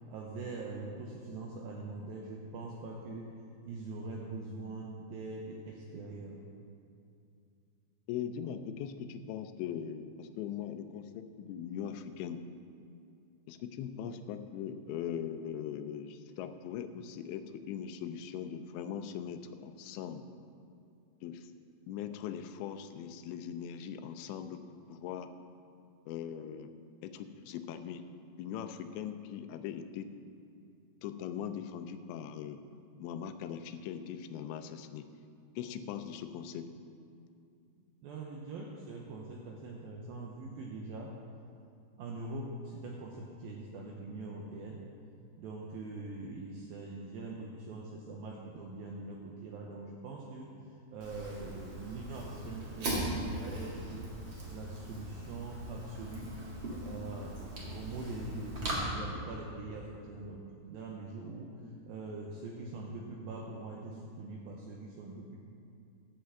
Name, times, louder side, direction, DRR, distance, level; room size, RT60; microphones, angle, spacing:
voice 1, 0.1-3.3 3.6-6.4 38.0-41.2 42.0-44.8 45.4-50.5 50.9-54.1 54.5-56.3 56.8-65.4, right 2 dB, 80° right, -1 dB, 2.1 m, -43 dB
voice 2, 8.1-12.4 13.5-20.3 21.2-21.5 21.9-25.3 26.1-26.7 27.0-28.0 28.4-30.1 31.0-32.6 33.0-35.1 35.6-36.7 56.8-57.0, left 8 dB, 90° left, 9 dB, 2.9 m, -40 dB
Fire, 51.0-58.7, right 1 dB, 50° right, 1.5 m, -40 dB
10.0 x 5.7 x 7.6 m, 2.5 s
omnidirectional pair, 5.1 m